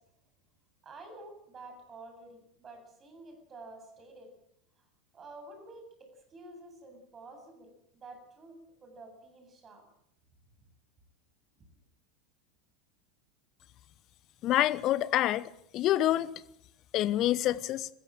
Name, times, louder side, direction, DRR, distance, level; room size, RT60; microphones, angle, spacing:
voice 1, 0.8-4.3 4.8-4.9 5.1-8.5 8.8-9.8, right 2 dB, 25° right, 8.0 m, -50 dB
voice 2, 14.4-16.3 16.9-17.9, left 13 dB, 40° left, 0.9 m, -27 dB
21.0 x 15.5 x 8.9 m
figure-of-eight pair, 80°, 0 cm